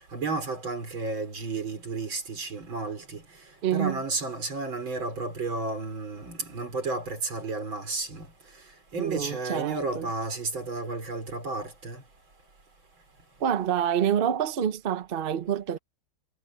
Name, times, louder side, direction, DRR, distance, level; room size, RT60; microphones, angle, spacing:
voice 1, 0.1-3.2 3.7-8.3 8.9-12.0, right 3 dB, 75° right, 5.2 m, -32 dB
voice 2, 3.6-4.0 9.0-10.1 13.4-15.8, right 9 dB, 50° right, 0.6 m, -27 dB
omnidirectional pair, 2.1 m